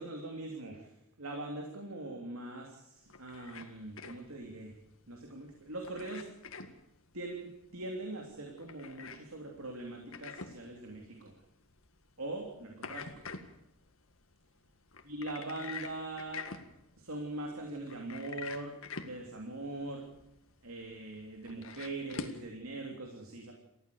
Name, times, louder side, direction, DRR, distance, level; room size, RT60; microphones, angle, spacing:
voice 1, 0.0-4.7 5.1-6.4 7.1-11.3 12.2-13.1 15.1-16.5 17.0-18.7 19.0-20.0 20.6-23.5, right 2 dB, 70° right, 1 dB, 3.3 m, -42 dB
sound 1, 3.0-22.5, left 4 dB, 60° left, 2.0 m, -48 dB
29.0 x 15.0 x 7.1 m, 0.89 s
head